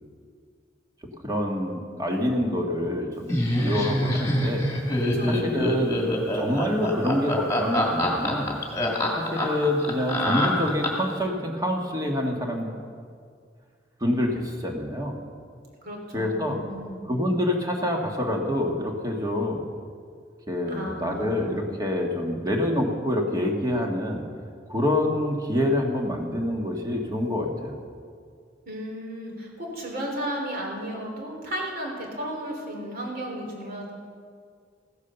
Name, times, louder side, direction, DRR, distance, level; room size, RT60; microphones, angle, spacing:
voice 1, 1.2-6.0 6.3-8.6 9.2-12.7 14.0-15.2 16.1-16.6 17.1-19.6 20.5-24.2 24.7-27.8, left 1 dB, 20° right, 1 dB, 1.6 m, -26 dB
Laughter, 3.3-11.1, left 1 dB, 15° left, 2.2 m, -25 dB
voice 2, 5.1-5.5 15.8-17.0 20.7-21.6 28.7-33.9, equal, 55° right, 0 dB, 3.3 m, -34 dB
15.5 x 9.6 x 6.9 m, 2.1 s
head